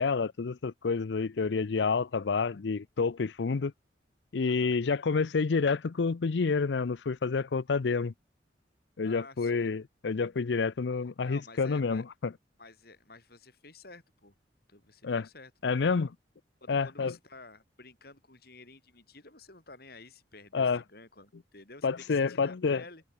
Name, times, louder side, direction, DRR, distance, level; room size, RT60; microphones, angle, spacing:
voice 1, 0.0-3.7 4.3-8.1 9.0-12.3 15.0-15.3 15.6-16.1 16.7-17.1 20.5-20.8 21.8-22.8, left 4 dB, 75° left, 0.5 m, -28 dB
voice 2, 4.4-4.8 9.0-9.7 11.2-12.0 12.6-14.3 14.7-15.7 16.6-23.0, left 3 dB, 60° left, 6.4 m, -52 dB
head